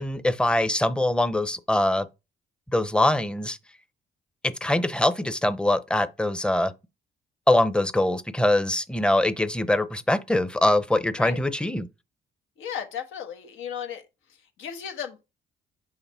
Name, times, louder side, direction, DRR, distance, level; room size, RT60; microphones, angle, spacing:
voice 1, 0.0-2.0 2.7-3.6 4.4-6.7 7.5-11.9, left 1 dB, 5° left, 0.6 m, -23 dB
voice 2, 12.6-14.0 14.6-15.2, left 8 dB, 90° left, 1.3 m, -34 dB
5.7 x 3.9 x 4.3 m
cardioid pair, 90°, 20 cm